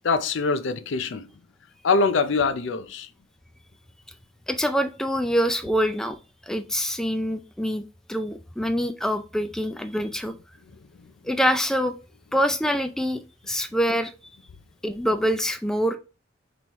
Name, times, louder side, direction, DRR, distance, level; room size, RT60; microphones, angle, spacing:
voice 1, 0.0-1.3 1.8-3.1 11.0-11.1, left 4 dB, 70° left, 0.5 m, -24 dB
voice 2, 4.5-6.2 6.4-10.3 11.2-11.9 12.3-14.1 14.8-16.0, equal, 5° left, 0.3 m, -25 dB
5.3 x 3.0 x 3.0 m
head